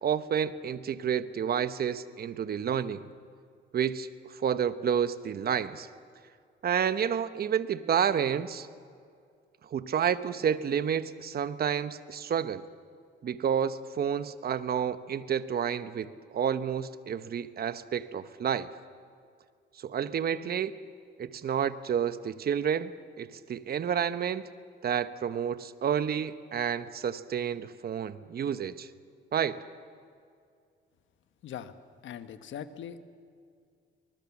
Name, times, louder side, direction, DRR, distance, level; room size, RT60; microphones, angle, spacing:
voice 1, 0.0-3.0 3.7-5.9 6.6-8.7 9.7-12.6 13.2-18.7 19.8-20.7 21.2-22.9 23.2-24.5 24.8-28.9 29.3-29.6, right 8 dB, 50° right, 13 dB, 1.0 m, -30 dB
voice 2, 31.4-31.7 32.0-33.0, left 9 dB, 75° left, 10 dB, 1.3 m, -40 dB
24.5 x 20.5 x 7.2 m, 2.2 s
cardioid pair, 90°, 20 cm